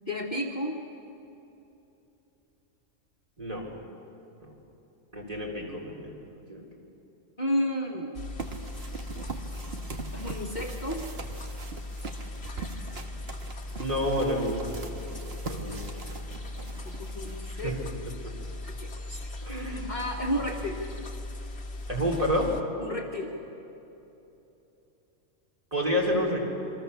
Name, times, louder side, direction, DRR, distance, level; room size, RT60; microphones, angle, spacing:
voice 1, 0.1-0.8 7.4-8.1 10.1-11.1 16.8-17.8 18.6-19.2 19.5-20.8 22.8-23.3, equal, 35° left, -1 dB, 1.7 m, -32 dB
voice 2, 3.4-3.7 4.4-4.5 5.1-6.2 6.5-6.6 13.8-14.8 15.5-15.8 16.6-16.7 17.5-17.7 18.2-18.3 19.4-19.9 21.9-22.5 25.7-26.4, equal, 30° right, -2 dB, 4.2 m, -29 dB
sound 1, 8.1-22.6, left 2 dB, 55° left, 1.7 m, -39 dB
sound 2, 8.4-17.9, right 4 dB, 50° right, 1.6 m, -42 dB
28.0 x 23.0 x 7.0 m, 2.9 s
omnidirectional pair, 1.3 m